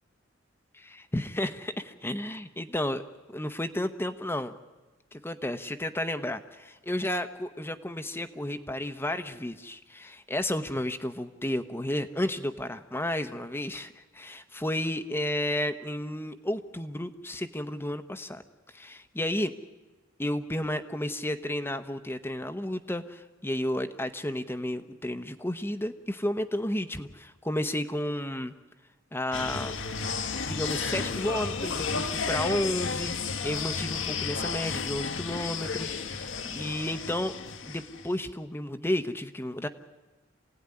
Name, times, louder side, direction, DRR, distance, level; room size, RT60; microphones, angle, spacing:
voice 1, 0.7-3.0 3.3-4.6 5.1-18.4 18.7-19.5 20.2-28.5 29.1-29.7 30.5-33.1 33.4-37.3 37.6-39.7, left 1 dB, 10° left, 8 dB, 0.9 m, -32 dB
sound 1, 29.3-38.1, left 5 dB, 65° left, 1.3 m, -32 dB
27.0 x 17.0 x 9.8 m, 1.1 s
head